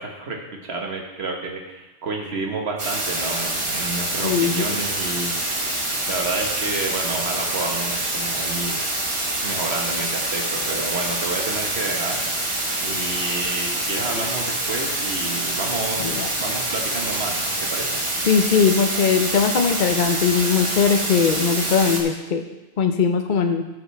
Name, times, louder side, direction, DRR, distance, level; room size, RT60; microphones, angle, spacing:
voice 1, 0.0-5.7 6.1-8.9 9.4-12.2 12.8-16.1 16.4-17.9, right 3 dB, 85° right, 1 dB, 1.6 m, -30 dB
sound 1, 2.8-22.0, right 1 dB, 30° right, 1.1 m, -26 dB
voice 2, 4.2-4.6 16.0-16.3 18.3-22.4 22.8-23.6, left 6 dB, 55° left, 5 dB, 0.8 m, -20 dB
14.5 x 5.9 x 3.3 m, 1.0 s
omnidirectional pair, 1.1 m